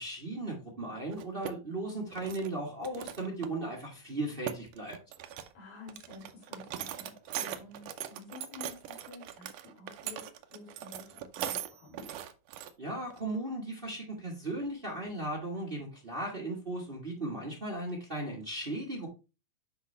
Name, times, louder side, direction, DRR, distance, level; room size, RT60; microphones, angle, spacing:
voice 1, 0.0-5.0 12.8-19.1, right 2 dB, 45° right, -2 dB, 0.6 m, -36 dB
sound 1, 1.1-1.5 1.9-2.5 2.8-3.6 3.9-4.0 4.2-5.5 5.9-12.7 13.1-13.2 14.6-14.7 15.0-15.3, right 10 dB, 75° right, 1.5 m, -40 dB
voice 2, 5.5-12.1, left 3 dB, 75° left, -2 dB, 4.3 m, -51 dB
8.0 x 5.4 x 3.2 m, 0.30 s
omnidirectional pair, 3.5 m